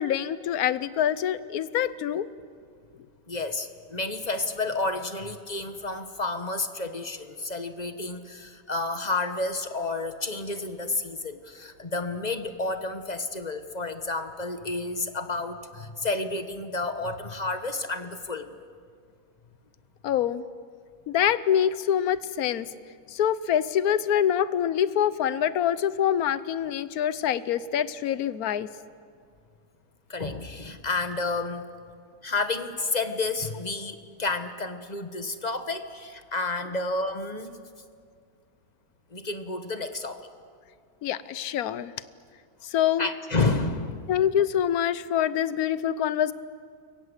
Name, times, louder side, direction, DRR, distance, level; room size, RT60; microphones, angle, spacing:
voice 1, 0.0-2.3 20.0-20.4 21.1-22.7 23.1-28.7 41.0-41.9 42.6-43.1 44.1-46.3, left 10 dB, 70° left, 16 dB, 1.3 m, -25 dB
voice 2, 3.3-18.6 30.1-31.6 32.2-37.6 39.1-40.3 43.0-44.1, left 3 dB, 30° left, 9 dB, 1.4 m, -30 dB
29.5 x 23.5 x 8.1 m, 2.1 s
omnidirectional pair, 1.6 m